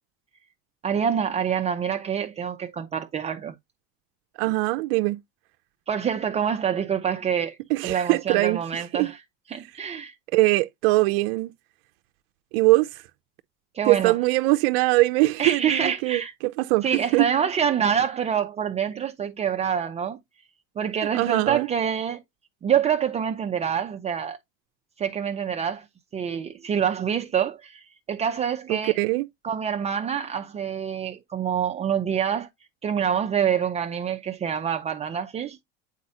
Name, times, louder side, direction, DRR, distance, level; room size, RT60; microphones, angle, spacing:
voice 1, 0.8-3.5 5.9-7.6 7.8-9.2 9.5-10.1 13.7-14.2 15.4-16.3 16.8-20.2 20.8-22.2 22.6-24.4 25.0-25.8 26.1-29.0 29.4-32.5 32.8-35.6, right 8 dB, 20° right, 0.5 m, -26 dB
voice 2, 4.4-5.2 7.7-8.6 8.9-9.1 10.3-11.5 12.5-13.0 13.8-16.9 17.1-17.3 21.1-21.7 28.7-29.3, right 20 dB, 75° right, 0.5 m, -22 dB
8.3 x 4.1 x 2.7 m
supercardioid pair, 130°, 29 cm